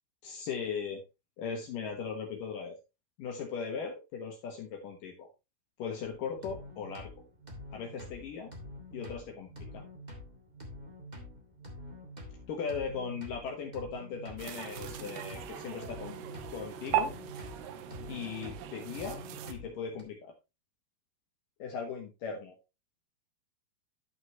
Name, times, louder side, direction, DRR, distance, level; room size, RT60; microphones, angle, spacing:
voice 1, 0.2-1.0 1.4-2.8 3.2-5.3 5.8-7.1 7.7-8.5 8.9-9.8 12.5-16.2 16.5-17.1 18.1-19.2 19.5-20.3 21.6-22.6, left 6 dB, 65° left, 2 dB, 2.6 m, -38 dB
sound 1, 6.0-20.0, left 1 dB, 20° right, 1.0 m, -47 dB
sound 2, 14.4-19.5, right 10 dB, 85° right, 2.8 m, -38 dB
11.5 x 5.9 x 3.0 m, 0.25 s
omnidirectional pair, 4.6 m